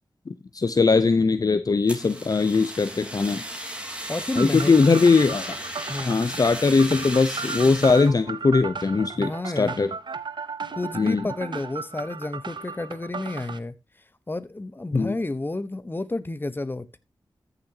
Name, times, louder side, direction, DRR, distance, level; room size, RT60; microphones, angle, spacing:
voice 1, 0.5-3.4 4.4-5.6 6.1-9.9 11.0-11.3 14.9-15.1, left 4 dB, 50° left, 11 dB, 0.8 m, -20 dB
Fire, 1.9-8.1, equal, 15° right, 3.6 m, -35 dB
voice 2, 4.1-4.8 5.9-6.2 9.1-9.8 10.7-13.7 14.3-17.0, left 2 dB, 25° left, 13 dB, 1.1 m, -30 dB
sound 1, 4.4-13.6, right 5 dB, 65° right, 0.8 m, -36 dB
14.0 x 6.9 x 2.9 m, 0.23 s
cardioid pair, 60°, 8 cm